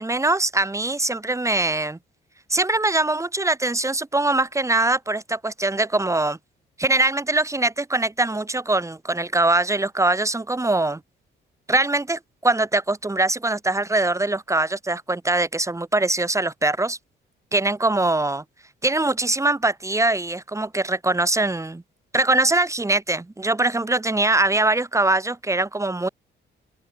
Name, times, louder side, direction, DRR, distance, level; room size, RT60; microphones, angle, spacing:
voice 1, 0.0-2.0 2.5-6.4 6.8-11.0 11.7-17.0 17.5-18.4 18.8-21.8 22.1-26.1, right 2 dB, 15° right, 5.3 m, -22 dB
open air
cardioid pair, 90°, 20 cm